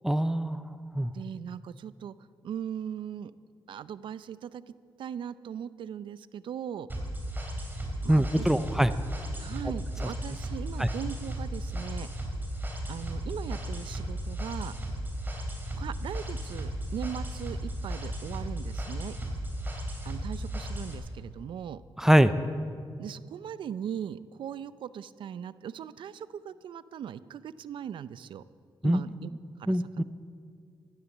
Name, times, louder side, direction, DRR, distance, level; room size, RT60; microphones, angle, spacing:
voice 1, 0.0-0.6 0.9-1.1 8.1-8.9 10.8-10.9 22.0-22.3 28.8-29.0 29.7-30.0, right 1 dB, 5° right, 12 dB, 0.5 m, -23 dB
voice 2, 1.1-2.1 2.4-3.3 3.7-4.6 5.0-6.9 8.0-8.5 9.4-12.1 12.9-14.7 15.8-19.2 20.0-21.8 23.0-28.4 28.8-29.3 29.6-30.0, right 9 dB, 75° right, 16 dB, 0.5 m, -39 dB
sound 1, 6.9-20.9, equal, 25° right, 3.1 m, -35 dB
15.0 x 11.5 x 7.2 m, 2.3 s
cardioid pair, 100°, 9 cm